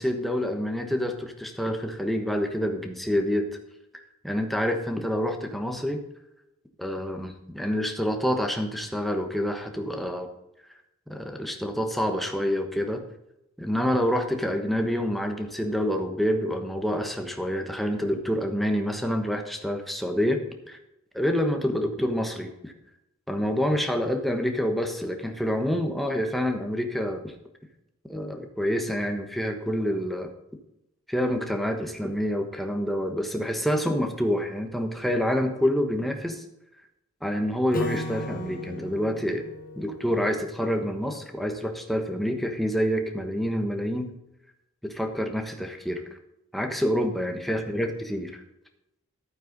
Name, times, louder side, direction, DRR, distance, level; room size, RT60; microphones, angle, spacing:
voice 1, 0.0-3.5 4.2-6.0 6.8-10.3 11.1-13.0 13.6-20.8 21.1-22.7 23.3-27.3 28.1-30.3 31.1-36.4 37.2-39.4 39.8-44.1 44.8-46.0 46.5-48.4, equal, ahead, 4 dB, 1.2 m, -27 dB
Acoustic guitar / Strum, 37.7-41.1, left 1 dB, 40° left, 1.2 m, -37 dB
12.0 x 9.0 x 4.0 m, 0.88 s
head